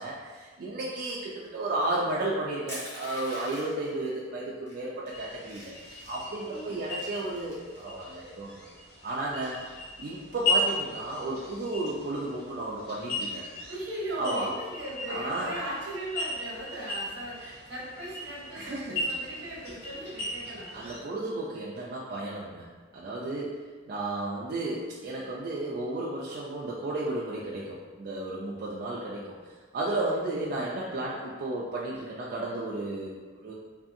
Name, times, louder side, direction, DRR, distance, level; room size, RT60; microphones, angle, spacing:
voice 1, 0.0-5.7 6.0-8.7 9.0-9.6 10.0-13.4 14.2-14.5 15.1-15.5 18.5-19.0 19.7-19.8 20.7-22.7 22.9-23.6 23.9-29.3 29.7-33.5, right 2 dB, 55° right, -5 dB, 0.3 m, -33 dB
Crushing, 2.7-3.9 4.7-4.8 5.1-6.3 6.7-7.8, equal, 15° left, 0.9 m, -43 dB
sound 1, 5.1-21.0, left 1 dB, 60° left, 0.8 m, -36 dB
voice 2, 6.4-6.9 13.7-20.8, right 1 dB, 85° right, -5 dB, 0.9 m, -38 dB
2.6 x 2.6 x 2.5 m, 1.4 s
head